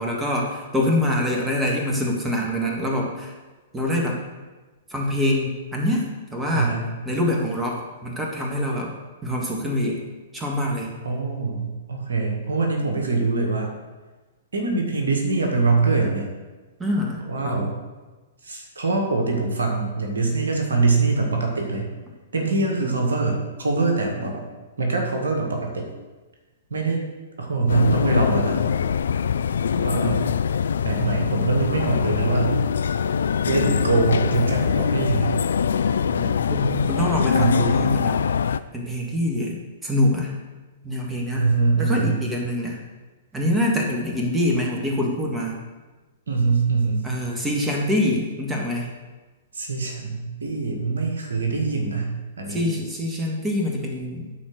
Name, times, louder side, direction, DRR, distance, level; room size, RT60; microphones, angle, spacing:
voice 1, 0.0-3.3 3.7-4.2 4.9-6.8 7.0-8.9 9.2-10.0 10.3-10.9 16.8-17.7 36.1-40.3 40.8-41.5 41.8-42.8 43.3-45.6 47.0-48.9 52.5-54.3, left 1 dB, 10° right, -1 dB, 1.7 m, -25 dB
voice 2, 6.5-6.9 11.0-13.7 14.5-16.3 17.3-17.7 18.4-21.9 22.3-24.5 24.8-25.9 26.7-27.0 27.4-28.6 29.7-30.3 30.8-32.6 33.5-35.4 37.3-37.9 41.3-42.2 46.3-47.1 49.5-52.7, right 3 dB, 70° right, 1 dB, 1.9 m, -23 dB
sound 1, 27.7-38.6, left 7 dB, 65° left, 0.3 m, -23 dB
11.5 x 4.4 x 6.4 m, 1.2 s
figure-of-eight pair, 110°, 0 cm